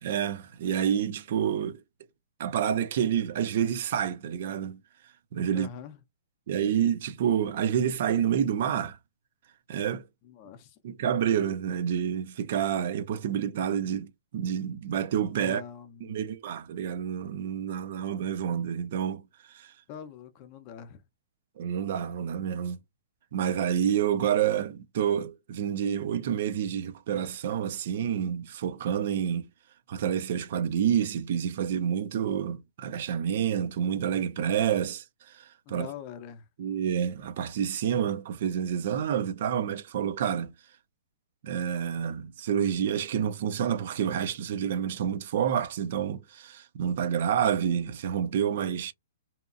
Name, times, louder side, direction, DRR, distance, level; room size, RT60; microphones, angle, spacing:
voice 1, 0.0-1.8 2.4-4.8 5.3-5.7 6.5-9.0 9.7-10.1 10.8-15.6 16.1-19.2 19.5-19.7 21.6-22.8 23.3-29.5 29.9-35.9 36.6-40.5 41.4-48.9, right 9 dB, 55° right, 0.4 m, -28 dB
voice 2, 5.5-6.0 10.2-10.8 15.3-16.2 19.9-21.0 35.7-36.5, left 9 dB, 35° left, 0.5 m, -43 dB
2.7 x 2.3 x 2.5 m
hypercardioid pair, 150°, 0 cm